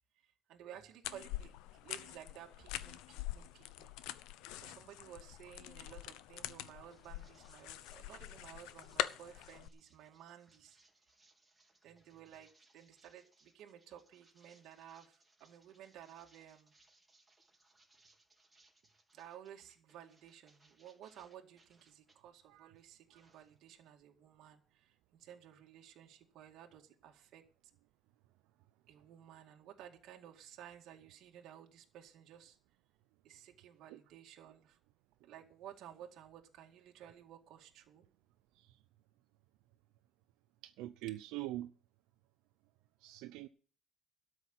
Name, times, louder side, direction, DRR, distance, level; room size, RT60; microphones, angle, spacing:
voice 1, 0.2-1.5 1.8-3.9 4.6-10.8 11.8-16.7 19.1-27.4 28.9-32.6 33.2-34.8 35.2-38.0, right 10 dB, 60° right, 2.1 m, -55 dB
sound 1, 1.0-9.7, left 14 dB, 85° left, 0.8 m, -44 dB
sound 2, 6.5-22.2 22.6-23.9, right 2 dB, 10° right, 3.6 m, -70 dB
voice 2, 40.6-41.7 43.0-43.5, right 16 dB, 80° right, 0.7 m, -43 dB
13.0 x 6.4 x 9.1 m
cardioid pair, 150°, 0 cm